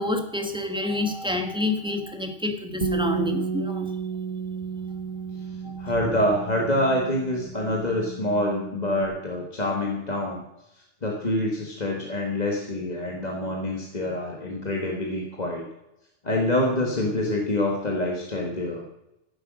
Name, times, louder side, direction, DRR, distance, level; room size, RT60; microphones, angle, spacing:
voice 1, 0.0-3.9 5.6-5.7, left 2 dB, 5° right, 5 dB, 1.4 m, -28 dB
Bass guitar, 2.8-9.1, right 6 dB, 35° right, 1.3 m, -32 dB
voice 2, 5.8-10.4 11.0-15.6 16.2-18.8, left 1 dB, 40° left, 0 dB, 1.7 m, -26 dB
15.0 x 8.0 x 6.2 m, 0.89 s
omnidirectional pair, 1.2 m